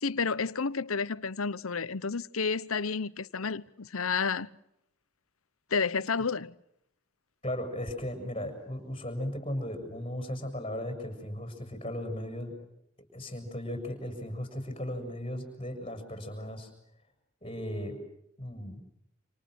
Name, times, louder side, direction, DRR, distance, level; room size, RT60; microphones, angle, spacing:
voice 1, 0.0-4.5 5.7-6.5, left 5 dB, 90° left, 1.0 m, -30 dB
voice 2, 7.4-12.5 13.1-16.7 17.4-18.0 18.4-18.8, left 1 dB, 25° left, 6.8 m, -36 dB
29.5 x 28.0 x 6.4 m
head